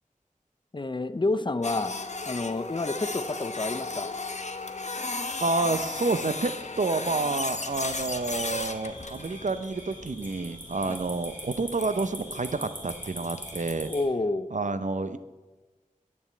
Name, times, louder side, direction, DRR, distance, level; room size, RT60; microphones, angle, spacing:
voice 1, 0.7-1.9 2.3-4.1 10.8-11.0 13.9-14.5, left 2 dB, 35° left, 12 dB, 0.6 m, -29 dB
Printer, 1.6-13.7, left 3 dB, 55° left, 0.8 m, -36 dB
voice 2, 5.4-13.9 14.5-15.2, right 3 dB, 60° right, 11 dB, 0.6 m, -29 dB
sound 1, 7.7-14.0, equal, 15° right, 2.9 m, -43 dB
8.7 x 7.2 x 8.2 m, 1.2 s
wide cardioid pair, 50°, 14 cm